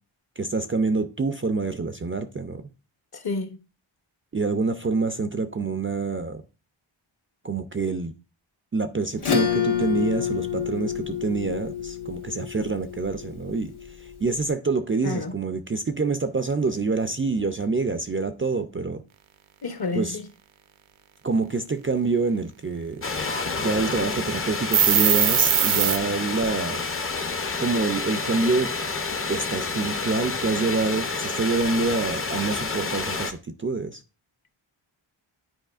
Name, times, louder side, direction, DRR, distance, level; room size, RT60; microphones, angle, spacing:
voice 1, 0.4-2.6 4.3-6.4 7.4-8.1 8.7-19.0 19.9-20.2 21.2-23.0 23.6-26.8 27.6-28.7 29.3-34.0, right 3 dB, 30° right, 0.4 m, -26 dB
voice 2, 3.2-3.6 15.0-15.3 19.6-20.2, left 3 dB, 50° left, 0.9 m, -29 dB
Acoustic guitar / Strum, 9.2-14.1, left 8 dB, 80° left, 1.6 m, -28 dB
sound 1, 23.0-33.3, left 4 dB, 25° left, 0.6 m, -29 dB
sound 2, 24.7-26.0, right 8 dB, 80° right, 0.7 m, -20 dB
9.0 x 4.8 x 2.4 m
wide cardioid pair, 85°, 49 cm